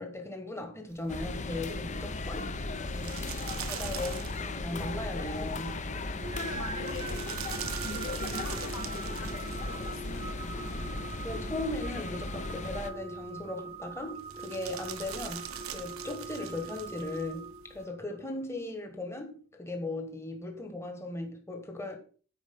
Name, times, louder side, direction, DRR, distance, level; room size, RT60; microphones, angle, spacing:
voice 1, 0.0-2.5 2.8-3.2 3.7-5.8 11.2-22.0, left 2 dB, 10° left, 1.3 m, -38 dB
sound 1, 0.9-17.8, right 8 dB, 85° right, 1.1 m, -45 dB
sound 2, 1.1-12.9, left 2 dB, 35° left, 0.7 m, -36 dB
voice 2, 6.1-7.4 7.8-10.8, left 2 dB, 85° left, 1.9 m, -44 dB
sound 3, 6.2-18.2, right 3 dB, 25° right, 0.6 m, -42 dB
9.7 x 4.8 x 7.0 m
head